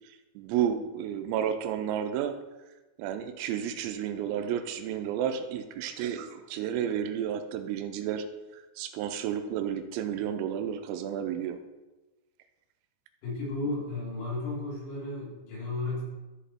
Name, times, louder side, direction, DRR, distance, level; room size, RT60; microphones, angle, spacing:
voice 1, 0.4-2.4 3.0-8.3 8.5-11.6, right 9 dB, 85° right, 8 dB, 3.5 m, -31 dB
voice 2, 13.2-16.0, left 2 dB, 60° left, -6 dB, 5.5 m, -33 dB
14.0 x 5.2 x 4.3 m, 1.1 s
omnidirectional pair, 5.9 m